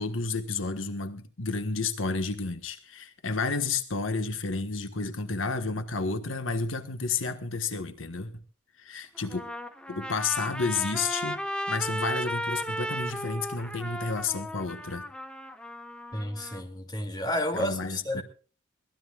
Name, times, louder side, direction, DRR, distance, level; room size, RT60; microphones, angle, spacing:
voice 1, 0.0-8.3 8.8-9.4 9.9-15.0 17.5-18.2, left 4 dB, 80° left, 1.5 m, -31 dB
Trumpet, 9.2-16.6, equal, 5° left, 1.2 m, -35 dB
voice 2, 16.1-18.2, left 1 dB, 20° left, 2.6 m, -31 dB
23.0 x 18.0 x 2.4 m
head